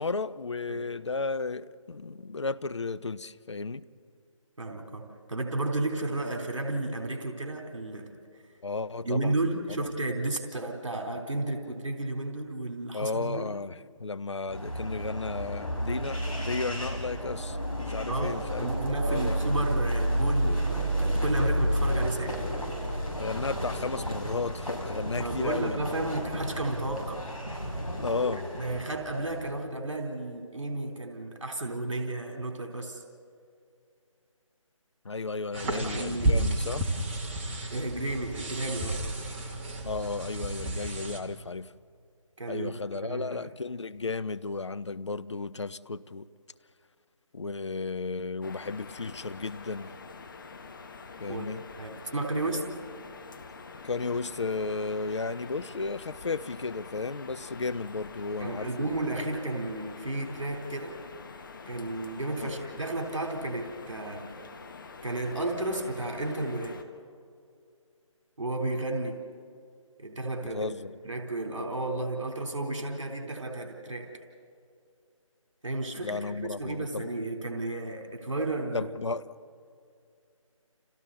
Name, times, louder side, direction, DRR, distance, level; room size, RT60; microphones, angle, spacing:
voice 1, 0.0-3.8 8.6-9.4 9.7-9.9 12.9-18.7 19.1-19.5 23.2-25.8 27.9-28.5 35.0-36.9 39.8-41.7 42.5-46.3 47.3-49.9 51.2-51.6 53.8-58.9 62.4-62.5 70.5-70.9 76.0-77.1 78.7-79.3, left 3 dB, 55° left, 0.8 m, -34 dB
voice 2, 4.6-8.1 9.0-13.5 18.1-22.4 25.1-27.3 28.3-33.0 35.6-36.4 37.7-39.0 42.4-43.4 51.3-52.7 58.4-61.0 61.7-64.4 65.0-66.8 68.4-69.2 70.0-70.7 71.0-74.1 75.6-78.9, right 2 dB, 65° right, 3.9 m, -33 dB
sound 1, 14.5-29.6, equal, 85° left, 6.8 m, -31 dB
sound 2, 35.5-41.2, right 1 dB, 20° right, 2.0 m, -31 dB
sound 3, 48.4-66.8, left 4 dB, 40° left, 1.6 m, -46 dB
30.0 x 30.0 x 4.2 m
figure-of-eight pair, 155°, 17 cm